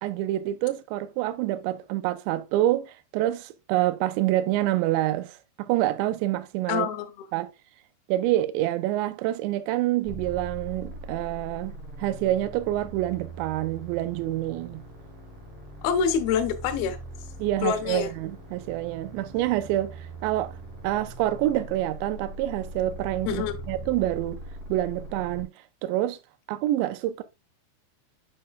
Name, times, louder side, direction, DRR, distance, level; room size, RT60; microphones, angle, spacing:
voice 1, 0.0-6.9 7.3-7.5 8.1-11.7 12.0-14.8 17.4-20.5 20.8-24.4 24.7-25.5 25.8-26.2 26.5-27.2, right 14 dB, 85° right, 2.6 m, -27 dB
voice 2, 6.7-7.3 15.8-17.0 17.6-18.1 23.3-23.5, left 7 dB, 85° left, 2.2 m, -26 dB
sound 1, 10.0-25.4, right 2 dB, 50° right, 1.9 m, -41 dB
7.6 x 6.6 x 2.3 m
omnidirectional pair, 5.8 m